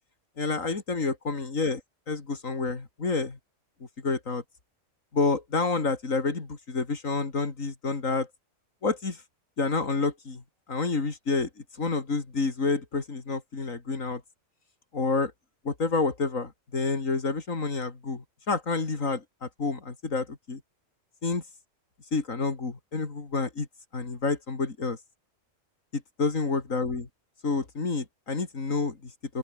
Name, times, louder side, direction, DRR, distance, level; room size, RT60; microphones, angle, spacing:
voice 1, 0.4-1.8 2.1-3.4 4.0-4.4 5.1-8.3 8.8-9.2 9.6-10.4 10.7-11.5 11.8-14.2 14.9-15.3 15.6-20.6 21.2-21.4 22.1-23.7 23.9-25.0 25.9-27.1 27.4-29.4, left 3 dB, 80° left, 3.4 m, -29 dB
open air
omnidirectional pair, 1.4 m